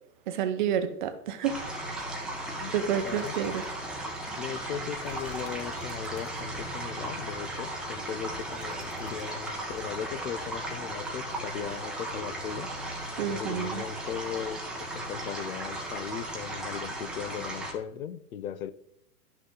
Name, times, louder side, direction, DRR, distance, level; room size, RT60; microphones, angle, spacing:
voice 1, 0.3-1.6 2.7-3.6 13.2-13.8, right 8 dB, 30° right, 0.8 m, -29 dB
sound 1, 1.4-17.7, right 1 dB, ahead, 0.9 m, -36 dB
sound 2, 2.8-6.8 7.3-9.8, left 2 dB, 75° left, 4.2 m, -51 dB
voice 2, 3.0-3.6 4.4-12.7 13.3-18.7, left 9 dB, 60° left, 0.9 m, -38 dB
12.0 x 6.1 x 3.9 m
hypercardioid pair, 160°, 47 cm